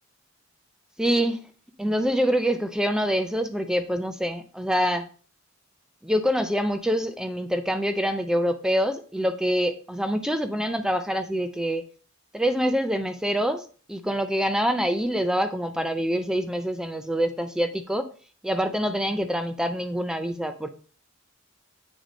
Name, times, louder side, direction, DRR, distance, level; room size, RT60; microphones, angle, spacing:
voice 1, 1.0-1.4 1.8-5.1 6.0-11.8 12.3-18.1 18.4-20.7, equal, 5° right, 9 dB, 0.4 m, -25 dB
8.1 x 3.5 x 5.1 m, 0.42 s
head